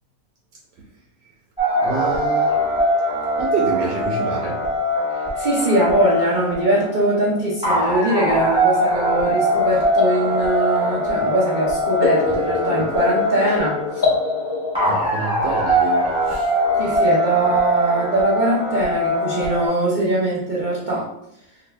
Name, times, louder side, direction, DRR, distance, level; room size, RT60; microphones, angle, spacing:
sound 1, 1.6-19.7, equal, 5° right, 0.8 m, -22 dB
voice 1, 1.8-2.6 3.4-4.6 12.3-12.4 12.8-12.9 14.8-16.5, right 4 dB, 80° right, -2 dB, 1.2 m, -27 dB
voice 2, 5.3-14.0 16.8-21.1, right 1 dB, 60° right, -8 dB, 0.5 m, -21 dB
sound 2, 8.3-14.9, left 4 dB, 55° left, 0.6 m, -26 dB
2.9 x 2.6 x 3.2 m, 0.80 s
omnidirectional pair, 1.9 m